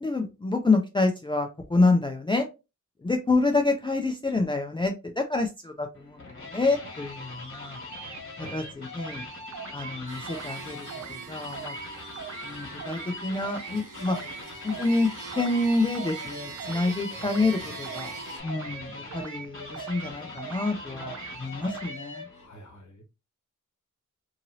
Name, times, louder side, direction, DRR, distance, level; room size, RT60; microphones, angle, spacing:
voice 1, 0.0-2.5 3.0-6.2 6.5-7.8 8.4-9.2 9.7-10.8 11.1-11.7 12.4-14.2 14.6-15.1 15.4-18.1 18.4-22.2, left 3 dB, 15° left, 0.4 m, -27 dB
sound 1, 5.9-22.5, left 2 dB, 40° left, 1.4 m, -42 dB
sound 2, 7.9-8.2 8.4-9.3 9.5-10.0 10.3-10.6 10.9-11.2 11.5-11.9 12.1-12.5 12.8-13.1 13.4-13.8 14.0-14.4 14.7-15.0 15.3-15.7 15.9-16.3 16.6-16.9 17.2-17.6 17.8-18.2 18.5-18.8 19.1-19.5 19.7-20.1 20.4-20.7 21.0-21.4 21.6-22.0, right 7 dB, 60° right, 0.5 m, -40 dB
voice 2, 8.4-8.8 22.3-23.0, equal, 65° left, 0.9 m, -49 dB
sound 3, 10.1-18.4, right 5 dB, 80° right, 1.2 m, -43 dB
2.9 x 2.6 x 2.7 m
wide cardioid pair, 90°, 31 cm